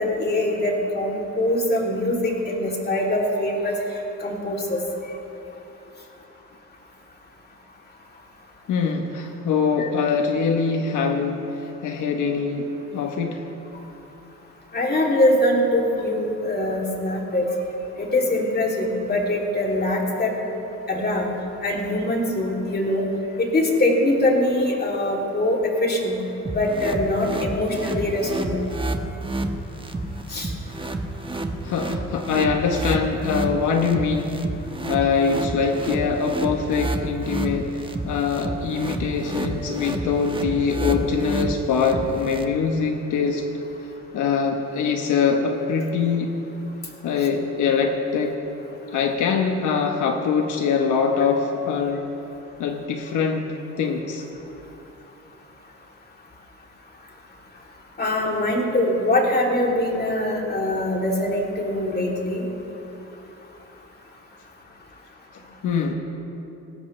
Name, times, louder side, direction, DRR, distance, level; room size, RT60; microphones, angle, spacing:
voice 1, 0.0-3.7 4.2-4.8 9.8-9.9 14.7-17.5 18.0-20.3 20.9-21.3 21.6-23.0 23.4-26.2 26.5-28.6 30.3-30.5 58.0-62.4, left 1 dB, 30° left, -1 dB, 3.0 m, -23 dB
voice 2, 8.7-12.7 12.9-13.4 31.6-34.3 34.9-43.4 44.1-46.3 47.0-48.4 48.9-52.0 52.6-54.2 65.6-65.9, left 5 dB, 75° left, 3 dB, 1.1 m, -23 dB
sound 1, 26.5-42.4, right 2 dB, 15° right, 1.1 m, -30 dB
19.5 x 15.5 x 3.3 m, 3.0 s
cardioid pair, 90°, 30 cm